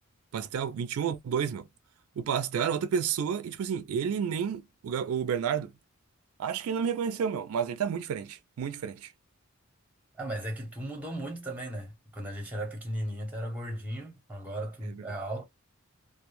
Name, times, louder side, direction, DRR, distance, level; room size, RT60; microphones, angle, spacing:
voice 1, 0.3-1.7 2.2-5.7 6.4-9.1 14.8-15.0, right 7 dB, 75° right, 0.3 m, -30 dB
voice 2, 10.2-15.4, right 1 dB, 5° right, 0.8 m, -36 dB
2.1 x 2.0 x 2.9 m
head